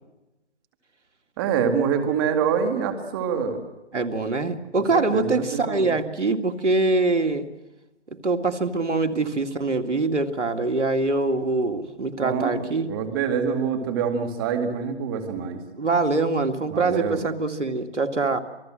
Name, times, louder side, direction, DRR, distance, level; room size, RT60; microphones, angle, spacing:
voice 1, 1.4-3.6 4.9-5.9 12.2-15.6 16.7-17.2, right 7 dB, 20° right, 7 dB, 2.3 m, -25 dB
voice 2, 3.9-7.5 8.2-12.9 15.8-18.4, right 3 dB, 90° right, 7 dB, 2.5 m, -24 dB
27.5 x 19.5 x 7.7 m, 0.99 s
hypercardioid pair, 160°, 34 cm